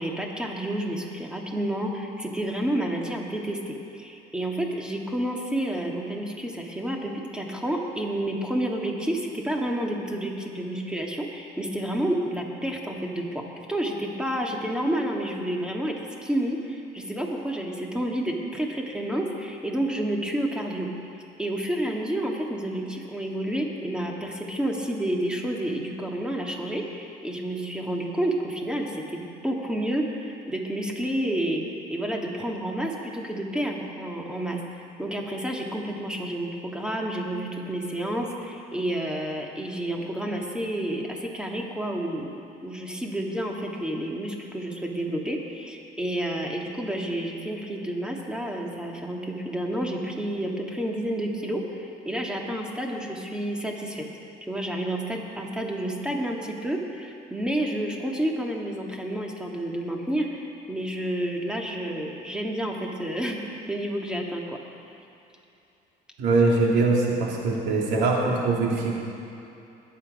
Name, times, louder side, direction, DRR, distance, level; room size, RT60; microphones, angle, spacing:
voice 1, 0.0-20.9 21.4-54.1 54.5-64.6, right 1 dB, 5° right, 0 dB, 1.9 m, -30 dB
voice 2, 66.2-69.0, right 3 dB, 85° right, -2 dB, 2.7 m, -22 dB
21.0 x 8.5 x 5.4 m, 2.7 s
cardioid pair, 110°, 17 cm